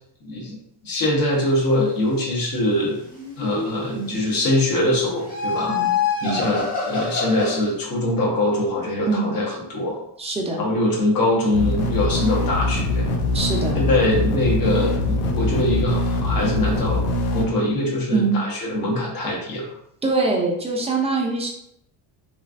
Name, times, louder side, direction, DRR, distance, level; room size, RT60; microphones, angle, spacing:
voice 1, 0.2-0.6 0.8-3.0 3.4-5.7 6.2-10.0 10.6-13.1 13.7-17.0 17.3-19.6, left 1 dB, 45° left, -3 dB, 1.1 m, -23 dB
sound 1, 3.0-4.0 5.0-7.7, left 5 dB, 15° left, 0.9 m, -26 dB
voice 2, 10.2-10.6 13.3-13.8 18.1-18.4 20.0-21.5, right 3 dB, 15° right, -1 dB, 0.5 m, -23 dB
sound 2, 11.5-17.4, left 2 dB, 85° left, 0.8 m, -23 dB
3.1 x 2.4 x 2.5 m, 0.73 s
cardioid pair, 125°, 49 cm